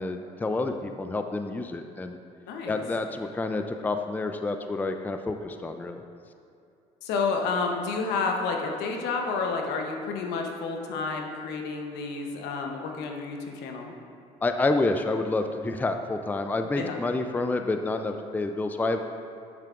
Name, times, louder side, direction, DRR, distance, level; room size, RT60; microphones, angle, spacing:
voice 1, 0.0-2.2 2.7-6.0 14.4-19.0, left 2 dB, 10° left, 6 dB, 0.4 m, -28 dB
voice 2, 2.5-2.8 7.0-13.9 16.8-17.0, left 4 dB, 75° left, 2 dB, 0.9 m, -30 dB
8.8 x 6.7 x 2.5 m, 2.5 s
supercardioid pair, 80°, 17 cm